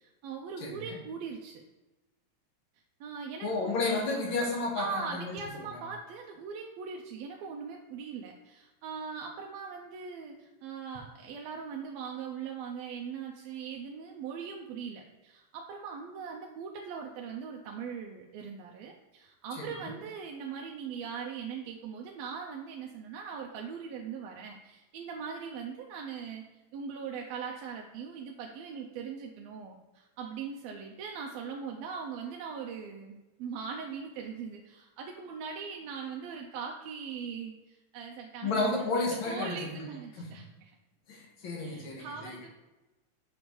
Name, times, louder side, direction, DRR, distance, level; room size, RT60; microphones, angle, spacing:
voice 1, 0.0-1.6 3.0-4.0 4.7-26.4 26.7-40.7 41.6-42.5, right 6 dB, 80° right, 1 dB, 1.6 m, -40 dB
voice 2, 0.6-1.0 3.4-5.3 19.6-19.7 38.4-39.7 40.2-40.3 41.1-42.4, left 3 dB, 60° left, 0 dB, 1.4 m, -32 dB
6.6 x 5.2 x 3.1 m, 1.1 s
omnidirectional pair, 3.4 m